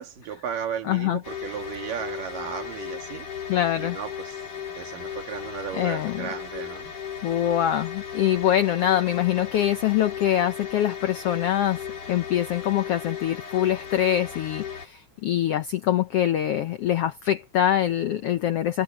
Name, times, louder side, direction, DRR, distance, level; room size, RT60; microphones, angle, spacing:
voice 1, 0.0-3.3 3.8-4.4 4.8-6.9, right 8 dB, 90° right, 3.8 m, -35 dB
voice 2, 0.8-1.2 3.5-4.0 5.7-6.3 7.2-11.8 12.1-18.8, left 11 dB, 85° left, 1.3 m, -24 dB
sound 1, 1.2-14.9, left 7 dB, 35° left, 2.5 m, -36 dB
omnidirectional pair, 3.7 m